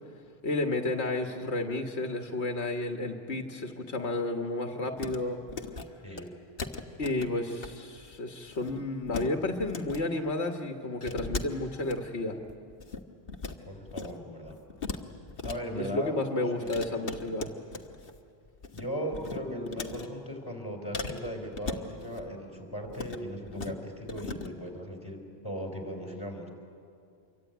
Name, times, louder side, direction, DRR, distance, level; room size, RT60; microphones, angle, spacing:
voice 1, 0.4-5.4 7.0-12.4 15.7-17.5, left 2 dB, 85° left, 4 dB, 1.7 m, -31 dB
sound 1, 5.0-5.2 5.4-5.9 6.2-6.3 6.6-7.7 8.0-8.1 8.5-9.3 9.6-10.0 11.0-11.9 12.4-13.6 13.9-14.2 14.4-15.6 16.7-18.2 18.5-18.9 19.1-20.1 20.9-22.3 22.8-23.2 23.5-23.7 24.1-24.5, left 4 dB, 60° left, 1.6 m, -38 dB
voice 2, 13.7-14.6 15.4-16.2 16.5-17.1 18.7-26.5, equal, 20° left, 2 dB, 4.4 m, -38 dB
26.5 x 23.5 x 9.3 m, 2.4 s
omnidirectional pair, 1.1 m